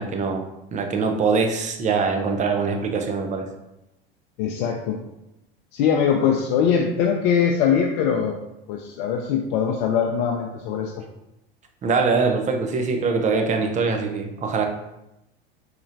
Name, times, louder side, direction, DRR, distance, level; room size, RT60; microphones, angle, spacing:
voice 1, 0.0-3.5 11.8-14.7, right 4 dB, 25° right, 4 dB, 0.6 m, -23 dB
voice 2, 4.4-5.0 5.7-8.3 8.7-10.9, left 7 dB, 55° left, 1 dB, 0.5 m, -22 dB
4.1 x 2.9 x 2.5 m, 0.89 s
hypercardioid pair, 85°, 30 cm